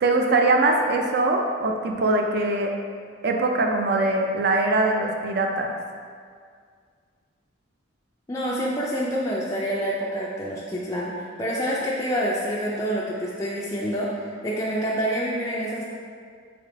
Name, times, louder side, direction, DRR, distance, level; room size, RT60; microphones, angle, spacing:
voice 1, 0.0-2.7 3.2-5.8, right 2 dB, 55° right, 3 dB, 0.4 m, -22 dB
voice 2, 8.3-15.8, equal, 15° left, -6 dB, 0.3 m, -27 dB
3.6 x 3.5 x 3.7 m, 2.1 s
head